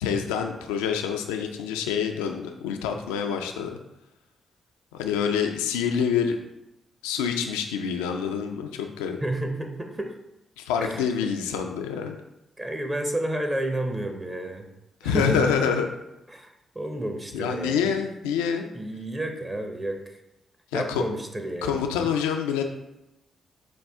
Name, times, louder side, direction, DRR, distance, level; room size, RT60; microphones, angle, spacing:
voice 1, 0.0-3.8 4.9-6.4 7.0-9.2 10.6-12.2 15.0-15.9 17.3-18.6 20.7-21.0 21.6-22.6, left 7 dB, 90° left, 4 dB, 0.3 m, -26 dB
voice 2, 9.2-10.2 10.8-11.1 12.6-14.7 15.0-15.5 16.3-17.9 18.7-20.2 20.7-21.8, right 1 dB, 25° right, 4 dB, 0.7 m, -31 dB
5.2 x 2.3 x 3.4 m, 0.93 s
hypercardioid pair, 45°, 0 cm